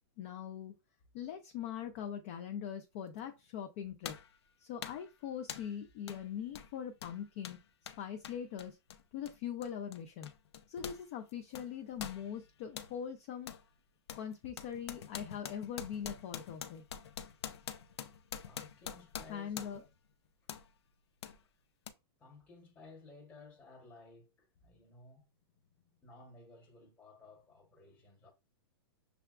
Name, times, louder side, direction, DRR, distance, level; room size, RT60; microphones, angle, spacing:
voice 1, 0.2-0.7 1.1-4.2 4.6-7.6 8.0-8.8 9.1-10.3 10.7-13.5 14.1-16.8 19.3-19.8, left 8 dB, 30° left, 0.4 m, -42 dB
sound 1, 3.2-3.3 4.0-4.4 4.8-5.1 5.5-5.8 6.1-6.2 6.5-11.0 11.3-12.9 13.5-13.7 14.1-19.9 20.5-20.7 21.2-21.4 21.9-22.0, left 8 dB, 85° left, 0.6 m, -46 dB
voice 2, 18.4-19.9 20.4-20.5 21.3-21.5 21.9-25.3 26.0-28.3, left 3 dB, 10° left, 1.0 m, -57 dB
6.7 x 2.2 x 2.4 m
supercardioid pair, 175°, 14 cm